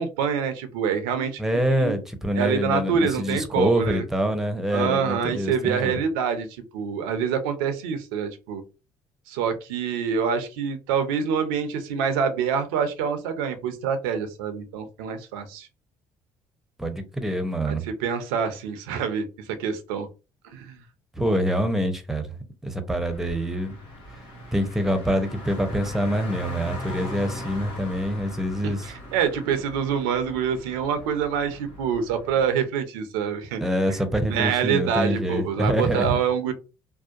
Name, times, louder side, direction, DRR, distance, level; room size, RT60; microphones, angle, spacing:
voice 1, 0.0-1.4 1.7-1.9 2.4-4.0 4.7-6.5 6.7-8.6 9.3-15.7 17.6-19.3 19.6-20.1 20.5-20.8 28.6-33.6 33.9-34.0 34.3-36.5, right 7 dB, 90° right, 0.5 m, -26 dB
voice 2, 1.4-6.0 16.8-17.8 21.2-22.3 22.6-23.8 24.5-28.9 33.6-36.1, equal, 5° right, 0.7 m, -25 dB
Car, 22.9-32.5, left 1 dB, 90° left, 1.0 m, -40 dB
2.6 x 2.1 x 2.4 m
supercardioid pair, 65°, 11 cm